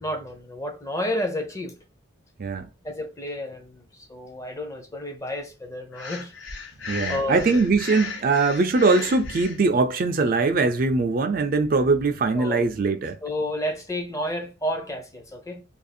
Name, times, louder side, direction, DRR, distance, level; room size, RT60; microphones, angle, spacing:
voice 1, 0.0-1.8 2.8-6.3 7.1-7.5 12.3-12.6 13.2-15.6, left 1 dB, 15° left, 0.6 m, -31 dB
Breathing, 5.9-9.6, left 5 dB, 65° left, 0.9 m, -36 dB
voice 2, 6.9-13.2, right 3 dB, 45° right, 0.4 m, -21 dB
2.8 x 2.5 x 4.1 m
head